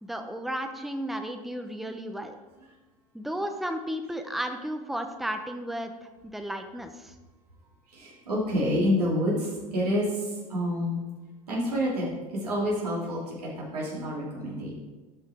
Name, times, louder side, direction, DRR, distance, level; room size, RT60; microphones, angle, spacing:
voice 1, 0.0-2.3 3.1-7.1, equal, ahead, 6 dB, 0.8 m, -34 dB
voice 2, 7.9-11.0 11.5-14.7, equal, 85° right, -5 dB, 2.8 m, -28 dB
12.0 x 5.5 x 3.5 m, 1.2 s
hypercardioid pair, 80°, 19 cm